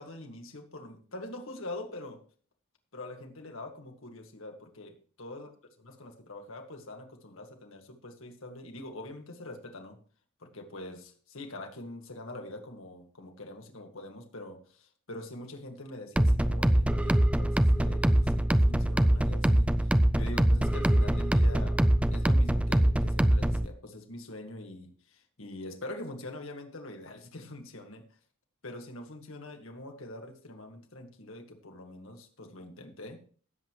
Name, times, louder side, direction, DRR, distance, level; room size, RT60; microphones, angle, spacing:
voice 1, 0.0-2.2 2.9-5.5 5.8-10.0 10.4-28.0 28.6-33.2, left 1 dB, 70° left, 4 dB, 2.0 m, -44 dB
sound 1, 16.2-23.7, right 1 dB, 5° right, 0.4 m, -24 dB
17.5 x 7.9 x 3.1 m, 0.44 s
head